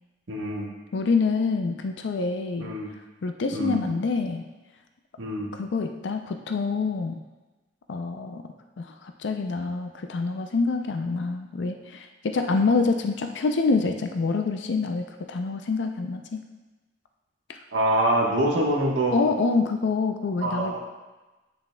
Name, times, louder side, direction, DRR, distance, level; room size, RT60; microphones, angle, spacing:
voice 1, 0.3-0.7 2.6-2.9 3.5-3.8 5.2-5.5 17.7-19.2 20.4-20.8, right 1 dB, 85° right, -1 dB, 1.2 m, -25 dB
voice 2, 0.9-2.7 3.2-4.4 5.5-7.2 7.9-8.4 8.8-16.4 17.5-17.6 19.1-20.8, left 4 dB, 65° left, 5 dB, 0.4 m, -26 dB
8.2 x 6.8 x 2.2 m, 1.2 s
head